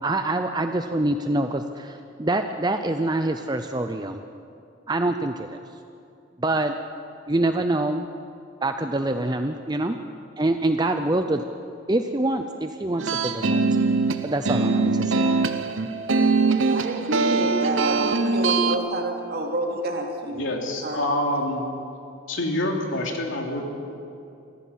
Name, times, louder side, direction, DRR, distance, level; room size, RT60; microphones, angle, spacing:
voice 1, 0.0-4.2 4.9-5.5 6.4-6.7 7.3-8.1 8.6-10.0 10.4-11.4 11.9-13.6 14.2-15.4, right 2 dB, 20° right, 7 dB, 0.6 m, -25 dB
sound 1, 13.0-18.8, right 3 dB, 75° right, 1.0 m, -22 dB
voice 2, 16.7-20.4 20.8-21.0, right 1 dB, 50° right, 0 dB, 2.8 m, -28 dB
voice 3, 20.3-21.6 22.3-23.7, left 1 dB, 70° left, 1 dB, 3.1 m, -26 dB
24.5 x 15.5 x 7.5 m, 2.6 s
head